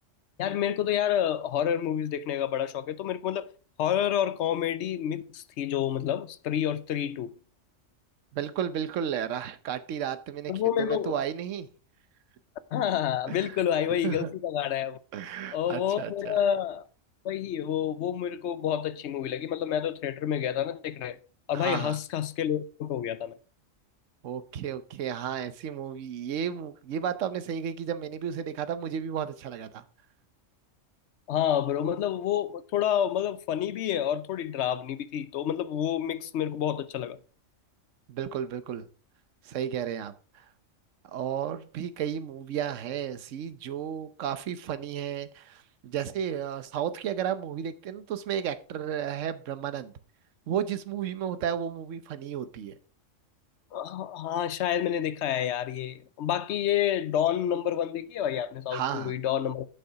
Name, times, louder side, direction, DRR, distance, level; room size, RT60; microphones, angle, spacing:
voice 1, 0.4-3.5 3.8-7.3 10.5-11.1 12.7-15.0 15.5-16.8 17.2-21.2 21.5-23.3 31.3-37.2 53.7-59.7, left 10 dB, 65° left, 0.9 m, -29 dB
voice 2, 8.3-10.5 10.8-11.7 13.3-13.5 14.0-14.3 15.1-16.4 21.5-22.0 24.2-29.8 38.1-38.9 39.4-40.4 41.0-49.9 50.5-52.7 58.7-59.1, right 9 dB, 70° right, 1.1 m, -33 dB
7.9 x 6.7 x 4.6 m
omnidirectional pair, 1.4 m